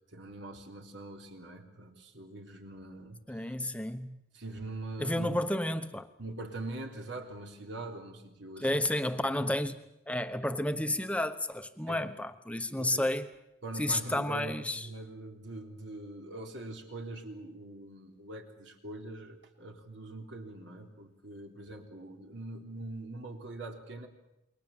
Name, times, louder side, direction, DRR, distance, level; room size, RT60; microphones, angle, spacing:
voice 1, 0.1-3.5 4.3-5.4 6.2-8.9 9.4-9.5 11.9-12.1 12.8-13.0 13.6-24.1, right 2 dB, 65° right, 3 dB, 3.6 m, -43 dB
voice 2, 3.3-4.2 5.0-6.1 8.6-9.8 10.1-13.3 13.8-14.9, left 1 dB, 5° left, 9 dB, 1.1 m, -31 dB
28.5 x 22.5 x 7.4 m, 0.87 s
head